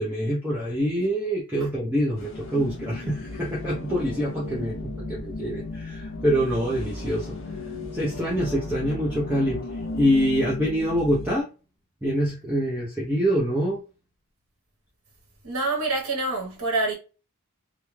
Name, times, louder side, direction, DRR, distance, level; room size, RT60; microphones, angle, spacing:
voice 1, 0.0-7.4 7.9-9.6 9.9-11.5 12.0-13.8, equal, 10° right, 0.5 m, -25 dB
sound 1, 2.2-11.4, left 2 dB, 60° left, 0.6 m, -35 dB
voice 2, 15.4-17.0, right 2 dB, 75° right, 1.0 m, -26 dB
2.3 x 2.2 x 3.1 m
head